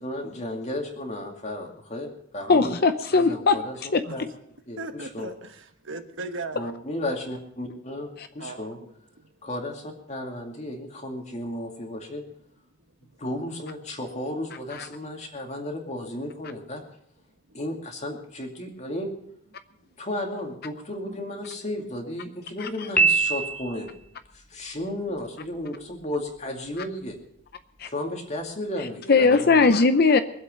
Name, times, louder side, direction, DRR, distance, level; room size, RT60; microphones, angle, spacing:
voice 1, 0.0-2.1 2.3-2.7 3.2-3.7 4.1-4.2 4.7-5.3 6.5-8.1 8.3-8.8 9.4-12.2 13.2-16.8 17.5-19.1 20.0-23.9 24.5-27.2 27.9-29.6, left 1 dB, 35° left, 2.3 m, -33 dB
voice 2, 2.5-4.3 8.2-8.3 14.7-14.9 22.6-22.9 27.8-27.9 28.8-30.2, left 4 dB, 50° left, 0.6 m, -20 dB
voice 3, 4.8-6.7 8.4-9.3 21.0-21.2, right 2 dB, 65° right, 1.2 m, -38 dB
Piano, 23.0-24.1, right 4 dB, 10° left, 1.1 m, -22 dB
22.5 x 8.1 x 5.3 m
head